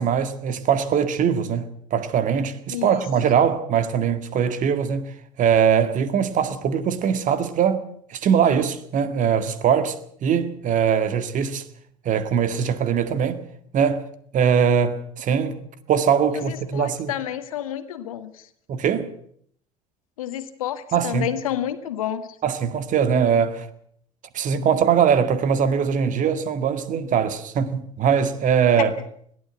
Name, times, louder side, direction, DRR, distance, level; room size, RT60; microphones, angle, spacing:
voice 1, 0.0-5.1 5.4-7.8 8.1-11.6 12.1-13.4 13.7-14.0 14.3-15.6 15.9-17.1 18.7-19.1 20.9-21.3 22.4-23.7 24.3-28.9, right 7 dB, 45° right, 2.0 m, -21 dB
voice 2, 2.7-3.0 16.3-18.3 20.2-22.3 28.7-28.8, left 11 dB, 75° left, 1.6 m, -29 dB
21.0 x 15.0 x 8.1 m
figure-of-eight pair, 60°, 18 cm